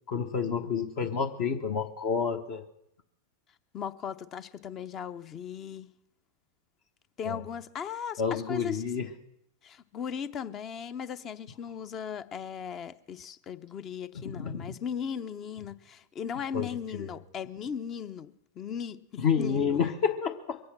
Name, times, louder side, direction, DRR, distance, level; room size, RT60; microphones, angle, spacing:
voice 1, 0.1-2.6 7.2-7.4 8.2-9.1 14.1-14.8 16.5-17.1 19.2-20.6, left 6 dB, 50° left, 1.1 m, -29 dB
voice 2, 3.7-5.9 7.2-8.2 8.5-8.8 9.6-19.8, left 7 dB, 30° left, 0.7 m, -37 dB
22.5 x 8.5 x 6.1 m
hypercardioid pair, 100°, 0 cm